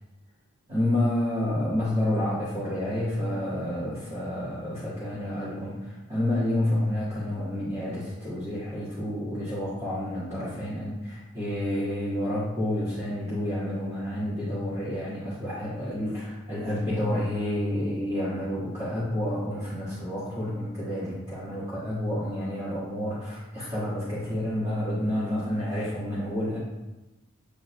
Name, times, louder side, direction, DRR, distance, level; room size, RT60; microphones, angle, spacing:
voice 1, 0.7-26.6, left 1 dB, 25° right, -11 dB, 1.6 m, -29 dB
8.2 x 3.8 x 3.1 m, 1.0 s
head